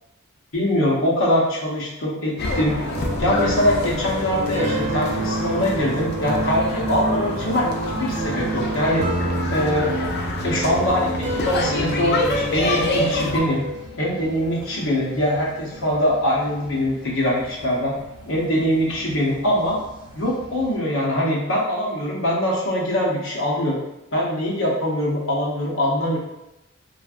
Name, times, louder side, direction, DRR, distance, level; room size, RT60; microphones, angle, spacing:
voice 1, 0.5-2.9 3.2-7.7 8.0-9.0 9.5-9.9 10.4-13.6 14.0-18.0 18.3-19.8 20.2-23.8 24.1-26.2, equal, 65° left, -4 dB, 0.8 m, -22 dB
sound 1, 2.4-13.4, left 2 dB, 45° left, 0.3 m, -28 dB
sound 2, 2.9-13.7, right 1 dB, 35° right, 0.4 m, -28 dB
sound 3, 3.4-20.8, equal, 80° right, 1.0 m, -44 dB
3.1 x 2.3 x 2.4 m, 0.92 s
head